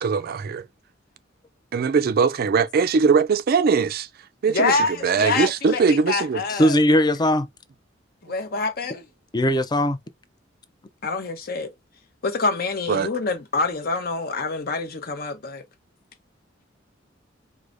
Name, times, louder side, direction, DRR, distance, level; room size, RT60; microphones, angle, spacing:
voice 1, 0.0-0.7 1.7-4.1 4.4-6.4 12.9-13.1, right 5 dB, 50° right, 0.3 m, -21 dB
voice 2, 4.5-6.8 8.2-9.0 11.0-11.7 12.2-15.6, left 3 dB, 55° left, 0.8 m, -26 dB
voice 3, 6.5-7.5 9.3-10.0, equal, 20° left, 0.4 m, -19 dB
4.7 x 2.0 x 2.5 m
head